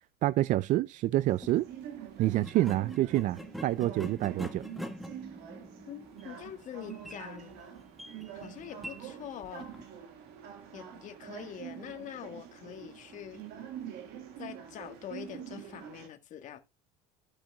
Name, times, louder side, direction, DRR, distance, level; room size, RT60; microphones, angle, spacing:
voice 1, 0.2-1.7 2.2-4.6, right 15 dB, 45° right, 0.4 m, -27 dB
sound 1, 1.3-1.6 2.4-9.9, equal, ahead, 1.3 m, -45 dB
sound 2, 1.3-16.1, right 9 dB, 65° right, 1.9 m, -46 dB
voice 2, 5.9-7.6 8.3-9.7 10.7-13.4 14.4-16.6, left 10 dB, 45° left, 1.6 m, -44 dB
15.0 x 5.2 x 2.3 m
supercardioid pair, 125°, 18 cm